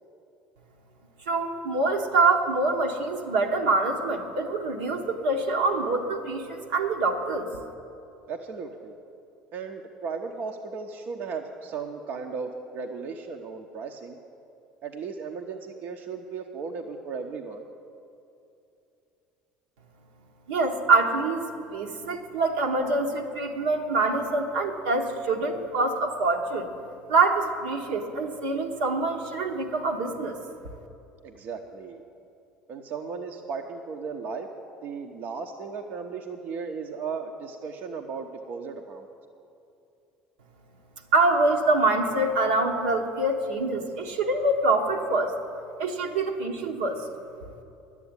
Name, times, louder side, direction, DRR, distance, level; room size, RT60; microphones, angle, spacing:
voice 1, 1.3-7.5 20.5-21.4 21.7-26.7 27.1-30.4 41.1-45.3 45.8-47.0, right 3 dB, 80° right, 2 dB, 1.2 m, -25 dB
voice 2, 8.3-8.9 9.5-14.2 14.8-17.6 31.2-32.0 32.7-34.5 34.8-39.1, right 5 dB, 60° right, 3 dB, 0.8 m, -36 dB
10.5 x 8.4 x 8.8 m, 2.7 s
hypercardioid pair, 70°, 4 cm